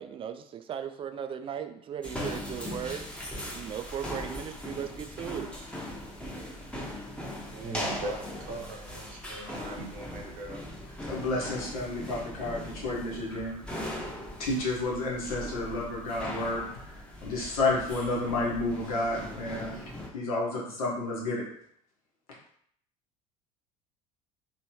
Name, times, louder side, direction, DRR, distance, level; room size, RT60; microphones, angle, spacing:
voice 1, 0.0-3.1 3.5-5.5, right 8 dB, 30° right, 8 dB, 0.4 m, -37 dB
sound 1, 2.0-20.1, left 1 dB, 5° left, 0.9 m, -39 dB
voice 2, 7.5-10.6, right 2 dB, 50° right, 1 dB, 0.8 m, -39 dB
voice 3, 11.1-13.5 14.4-19.8 20.1-21.4, left 2 dB, 75° left, -4 dB, 1.2 m, -31 dB
3.1 x 3.0 x 3.0 m, 0.67 s
figure-of-eight pair, 65°, 19 cm